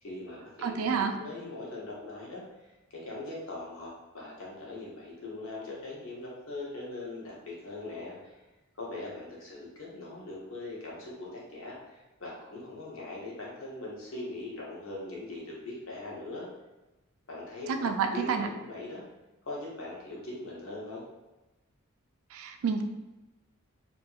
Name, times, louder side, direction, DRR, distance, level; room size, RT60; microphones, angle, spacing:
voice 1, 0.0-2.4 2.9-8.4 8.7-16.4 17.3-19.0 19.5-21.0, left 2 dB, 70° left, -4 dB, 0.8 m, -41 dB
voice 2, 0.6-1.2 17.7-18.5 22.3-22.8, right 6 dB, 80° right, 6 dB, 0.3 m, -29 dB
2.7 x 2.5 x 2.3 m, 1.1 s
head